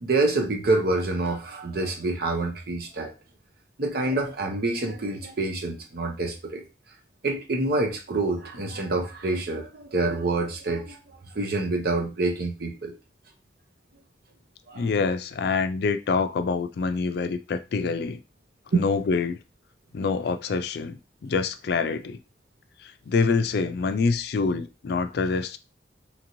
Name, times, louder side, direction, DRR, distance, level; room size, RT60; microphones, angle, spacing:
voice 1, 0.0-3.1 3.8-6.6 7.2-11.0 11.3-12.9 14.7-14.9 18.7-18.9, right 2 dB, 60° right, 0.7 m, -27 dB
voice 2, 14.8-18.2 18.7-19.4 19.9-22.2 22.8-25.6, left 4 dB, 65° left, 0.4 m, -26 dB
2.9 x 2.6 x 3.0 m
head